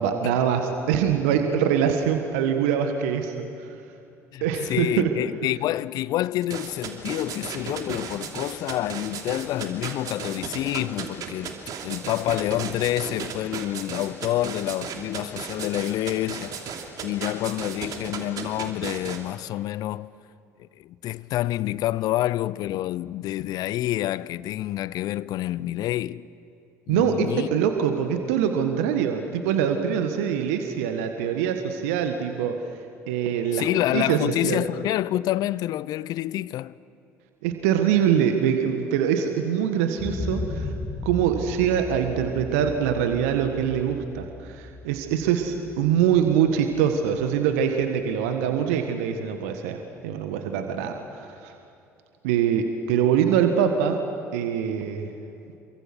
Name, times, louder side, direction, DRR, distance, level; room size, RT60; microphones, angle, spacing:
voice 1, 0.0-3.7 4.4-5.1 26.9-32.5 33.1-33.7 33.9-34.6 37.4-40.7 41.0-49.8 50.0-51.5 52.2-54.0 54.3-55.1, right 8 dB, 70° right, 1.6 m, -24 dB
voice 2, 4.3-16.8 17.0-20.1 20.6-26.3 26.9-27.5 33.5-36.8, left 14 dB, 55° left, 0.6 m, -28 dB
sound 1, 6.4-19.2, right 7 dB, 50° right, 2.9 m, -34 dB
sound 2, 40.0-47.9 48.3-48.4, left 2 dB, 35° left, 2.1 m, -36 dB
28.5 x 23.5 x 6.1 m
figure-of-eight pair, 55°, 8 cm